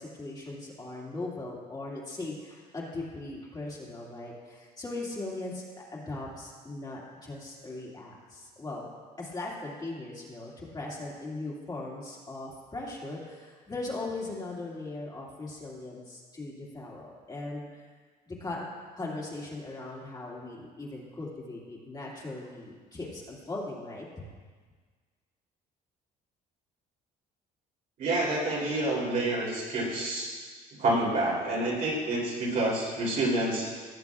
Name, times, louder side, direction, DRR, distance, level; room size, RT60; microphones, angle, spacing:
voice 1, 0.0-8.9 9.2-17.7 18.3-18.7 19.0-24.1, left 2 dB, 25° left, -5 dB, 2.2 m, -39 dB
voice 2, 28.0-30.4 30.8-33.7, right 2 dB, 60° right, -5 dB, 3.1 m, -28 dB
17.0 x 7.6 x 2.4 m, 1.5 s
cardioid pair, 110°, 17 cm